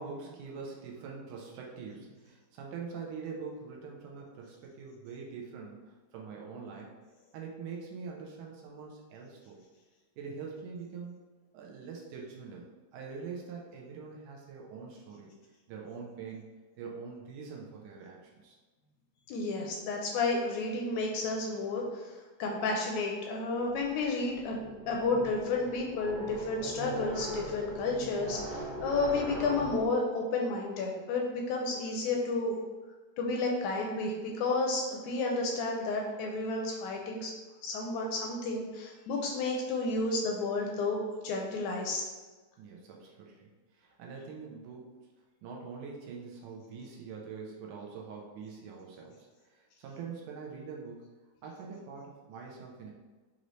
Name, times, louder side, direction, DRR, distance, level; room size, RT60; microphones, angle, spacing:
voice 1, 0.0-6.9 7.3-9.6 10.2-11.2 11.5-12.6 12.9-15.3 15.7-16.4 16.8-18.6 42.6-43.5 43.8-44.9 45.4-51.0 51.4-52.9, right 5 dB, 80° right, -1 dB, 2.1 m, -44 dB
voice 2, 19.3-22.1 22.4-32.6 33.2-37.3 37.6-42.0, left 3 dB, 80° left, 0 dB, 1.7 m, -31 dB
sound 1, 24.3-29.9, right 1 dB, 60° right, 2.4 m, -40 dB
6.2 x 2.7 x 3.1 m, 1.3 s
omnidirectional pair, 3.7 m